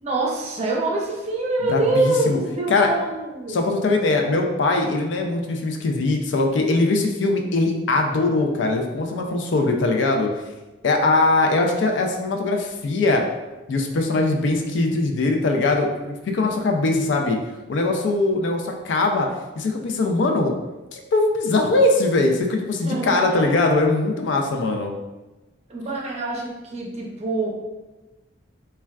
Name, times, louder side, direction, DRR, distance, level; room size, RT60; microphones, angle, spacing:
voice 1, 0.0-3.6 14.1-14.4 22.8-23.6 25.7-27.5, right 2 dB, 35° right, -3 dB, 0.5 m, -25 dB
voice 2, 1.7-2.4 2.7-2.9 3.5-10.3 10.8-13.2 13.7-17.4 17.7-19.3 19.6-20.5 20.9-24.9, left 2 dB, 70° left, 3 dB, 0.4 m, -21 dB
3.4 x 2.2 x 2.2 m, 1.1 s
head